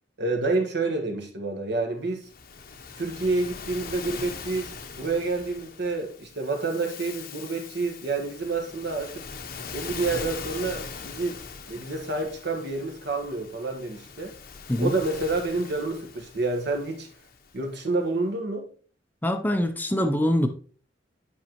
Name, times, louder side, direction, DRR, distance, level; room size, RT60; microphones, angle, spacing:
voice 1, 0.2-2.3 2.9-9.2 9.7-11.4 11.7-14.3 14.8-17.1 17.5-18.7, right 3 dB, 60° right, 1.3 m, -28 dB
Waves surf, 2.2-17.7, left 5 dB, 55° left, 0.8 m, -41 dB
voice 2, 19.2-20.5, left 1 dB, 10° left, 0.5 m, -24 dB
8.5 x 5.3 x 2.9 m
head